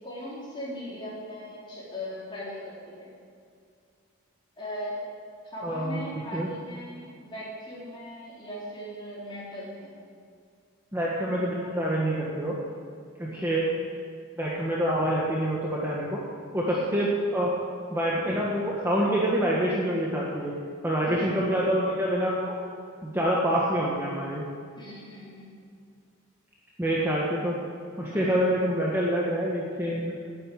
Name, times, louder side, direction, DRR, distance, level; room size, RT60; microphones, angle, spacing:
voice 1, 0.0-3.1 4.6-5.0 5.4-9.9 13.3-13.6 16.7-17.1 21.0-21.5 24.8-25.5, left 1 dB, 20° left, -7 dB, 4.0 m, -39 dB
voice 2, 5.6-6.0 6.3-6.5 10.9-12.6 13.2-13.6 14.4-16.2 16.5-17.5 17.9-20.5 20.8-22.5 23.0-24.4 26.8-27.6 28.0-30.1, equal, 10° right, -5 dB, 1.3 m, -26 dB
9.8 x 8.9 x 8.6 m, 2.3 s
head